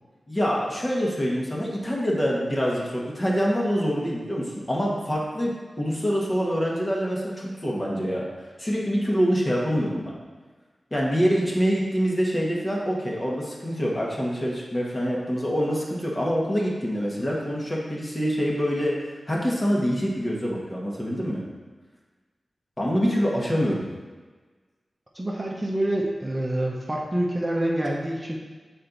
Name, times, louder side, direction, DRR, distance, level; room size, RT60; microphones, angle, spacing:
voice 1, 0.3-8.3 8.6-10.1 10.9-19.0 19.3-21.4 22.8-23.8, equal, 25° left, -3 dB, 1.4 m, -25 dB
voice 2, 25.1-28.4, right 1 dB, 20° right, -2 dB, 0.8 m, -26 dB
6.5 x 4.3 x 3.9 m, 1.3 s
wide cardioid pair, 75°, 0 cm